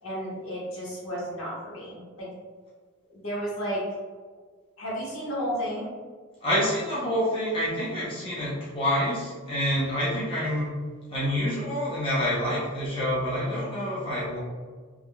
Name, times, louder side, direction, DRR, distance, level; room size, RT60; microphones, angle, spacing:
voice 1, 0.0-2.3 3.1-3.8 4.8-5.9, equal, 90° left, -6 dB, 1.1 m, -32 dB
voice 2, 6.4-10.7 11.1-14.4, equal, 25° left, -9 dB, 0.8 m, -27 dB
3.5 x 2.3 x 2.2 m, 1.5 s
head